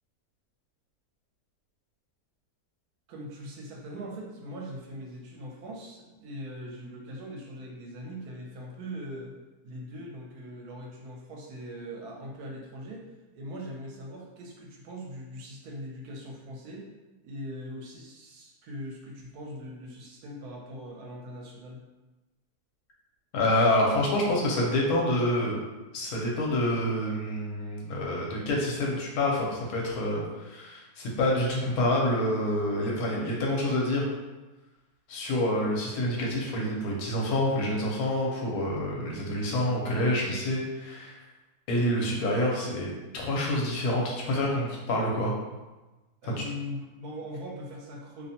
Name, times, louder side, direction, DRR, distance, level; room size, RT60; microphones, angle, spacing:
voice 1, 3.1-9.4 9.6-13.0 13.3-16.9 17.2-21.8 46.2-48.3, equal, 80° right, -1 dB, 1.1 m, -41 dB
voice 2, 23.3-25.6 25.9-34.1 35.1-41.2 41.7-45.3 46.2-46.3, left 1 dB, 75° left, -2 dB, 1.1 m, -27 dB
2.7 x 2.1 x 2.7 m, 1.1 s
omnidirectional pair, 1.6 m